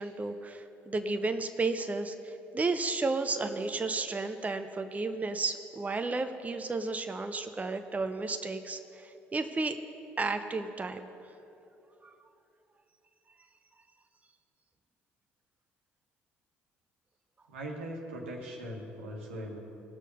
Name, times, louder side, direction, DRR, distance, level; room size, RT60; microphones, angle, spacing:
voice 1, 0.0-9.8 10.2-11.1 12.0-12.1, right 3 dB, 25° right, 7 dB, 0.7 m, -33 dB
voice 2, 17.5-19.6, right 1 dB, 90° right, 0 dB, 1.5 m, -40 dB
18.5 x 6.4 x 5.4 m, 2.9 s
hypercardioid pair, 55°, 6 cm